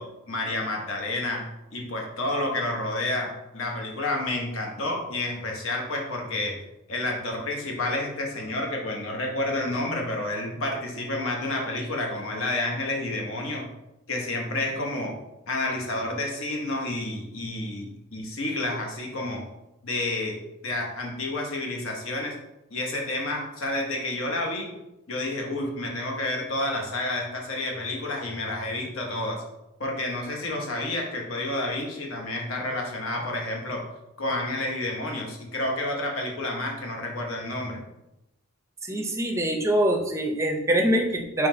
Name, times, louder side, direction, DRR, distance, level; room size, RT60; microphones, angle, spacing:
voice 1, 0.0-6.6 6.9-13.7 14.1-15.1 15.5-19.4 19.8-22.3 22.7-24.7 25.1-29.4 29.8-33.8 34.2-37.8, left 2 dB, 75° left, 0 dB, 1.0 m, -30 dB
voice 2, 38.8-41.5, right 1 dB, 15° right, 2 dB, 0.5 m, -24 dB
3.9 x 3.1 x 4.3 m, 0.92 s
head